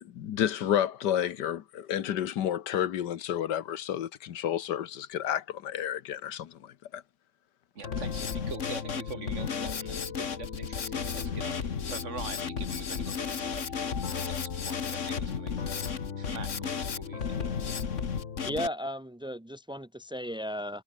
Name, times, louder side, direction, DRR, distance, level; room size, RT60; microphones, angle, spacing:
voice 1, 0.0-7.0, left 10 dB, 80° left, 1.6 m, -31 dB
Drum kit, 7.8-18.7, left 6 dB, 45° left, 1.7 m, -33 dB
voice 2, 7.8-15.8 16.2-17.5, right 4 dB, 45° right, 2.0 m, -44 dB
voice 3, 18.4-20.8, equal, 5° right, 0.4 m, -35 dB
omnidirectional pair, 1.8 m